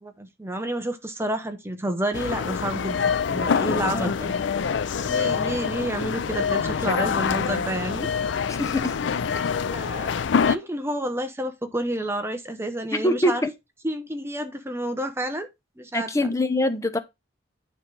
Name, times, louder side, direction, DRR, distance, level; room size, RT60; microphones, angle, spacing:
voice 1, 0.0-4.3 5.0-8.1 9.7-10.1 10.4-13.4 13.8-15.5 15.8-16.3, right 1 dB, 15° right, 0.9 m, -30 dB
sound 1, 2.1-10.6, left 6 dB, 65° left, 0.4 m, -25 dB
voice 2, 8.5-9.0 12.9-13.5 15.9-17.0, left 1 dB, 15° left, 0.7 m, -24 dB
9.3 x 3.3 x 5.3 m
head